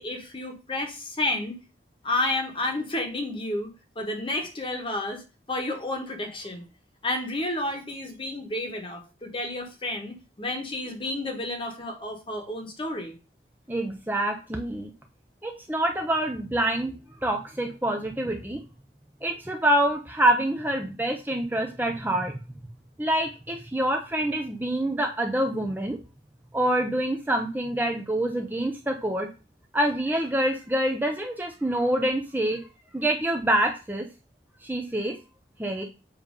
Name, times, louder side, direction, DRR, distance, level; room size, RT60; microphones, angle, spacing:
voice 1, 0.0-1.6 2.0-5.2 5.5-6.6 7.0-13.1, left 2 dB, 30° left, 3 dB, 1.2 m, -31 dB
voice 2, 13.7-14.9 15.4-16.9 17.2-18.6 19.2-22.3 23.0-26.0 26.5-29.3 29.7-32.6 32.9-34.0 34.6-35.2 35.6-35.8, right 1 dB, 10° right, 2 dB, 0.6 m, -26 dB
7.2 x 2.9 x 5.1 m, 0.31 s
head